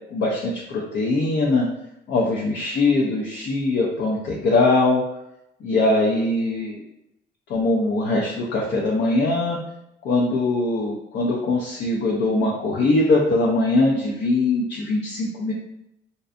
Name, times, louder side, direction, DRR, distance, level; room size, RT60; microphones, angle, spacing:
voice 1, 0.1-1.7 2.1-5.0 5.6-6.8 7.5-9.6 10.0-15.5, left 2 dB, 65° left, -3 dB, 0.5 m, -21 dB
2.6 x 2.2 x 2.4 m, 0.82 s
cardioid pair, 90°, 20 cm